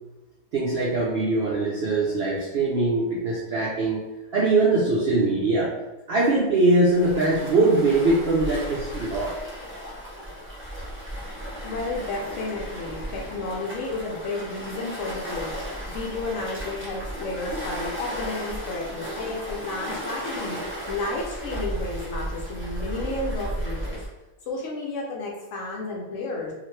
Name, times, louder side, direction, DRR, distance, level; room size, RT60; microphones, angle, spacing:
voice 1, 0.5-4.0 4.3-5.7 6.1-9.3, right 2 dB, 70° right, -4 dB, 0.6 m, -22 dB
Waves surf, 6.9-24.1, equal, 15° right, 0.4 m, -35 dB
voice 2, 11.6-20.6 20.9-24.0 24.5-26.5, left 2 dB, 65° left, -2 dB, 0.9 m, -32 dB
2.8 x 2.4 x 3.1 m, 1.1 s
omnidirectional pair, 1.5 m